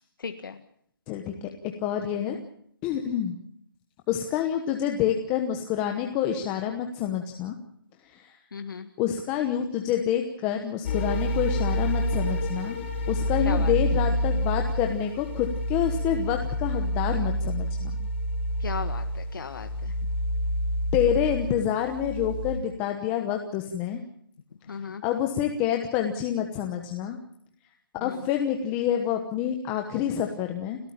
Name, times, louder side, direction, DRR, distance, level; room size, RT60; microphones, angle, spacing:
voice 1, 0.2-0.6 8.5-8.9 13.4-13.7 18.6-19.9 24.7-25.0 28.0-28.2, left 5 dB, 60° left, 7 dB, 1.6 m, -36 dB
voice 2, 1.1-1.5 1.8-2.4 2.8-3.4 4.1-7.5 8.1-8.3 9.0-12.8 13.1-17.9 20.9-24.0 25.0-27.2 28.0-30.8, left 9 dB, 10° left, 4 dB, 1.1 m, -27 dB
sound 1, 10.8-22.6, equal, 30° left, 4.2 m, -28 dB
30.0 x 13.0 x 8.6 m, 0.69 s
hypercardioid pair, 175°, 12 cm